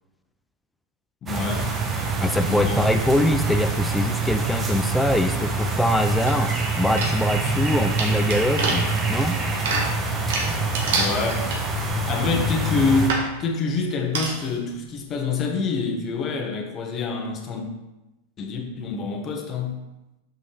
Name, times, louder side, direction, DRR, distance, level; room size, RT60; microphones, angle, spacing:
voice 1, 1.2-1.7 2.4-2.8 10.9-11.5 12.1-17.7 18.4-19.8, left 4 dB, 35° left, 3 dB, 1.3 m, -26 dB
sound 1, 1.3-13.1, right 3 dB, 25° right, 1.0 m, -25 dB
voice 2, 2.2-6.5 6.8-9.4, left 1 dB, 5° left, 7 dB, 0.5 m, -23 dB
sound 2, 6.3-6.6 7.0-12.0 12.5-12.6 13.1-13.3 14.1-14.6 15.0-15.1 15.3-15.4, right 3 dB, 70° right, 1.4 m, -28 dB
6.5 x 5.4 x 3.4 m, 1.0 s
hypercardioid pair, 100°, 0 cm